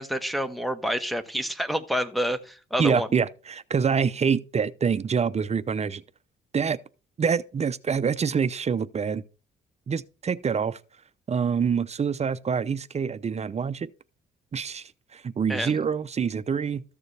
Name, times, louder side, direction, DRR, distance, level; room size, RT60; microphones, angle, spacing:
voice 1, 0.0-3.1 15.5-15.8, equal, ahead, 1.3 m, -28 dB
voice 2, 2.8-6.0 6.5-6.8 7.2-9.2 9.9-10.8 11.3-13.9 14.5-16.8, right 6 dB, 35° right, 0.6 m, -26 dB
14.0 x 6.8 x 3.4 m
cardioid pair, 90°, 20 cm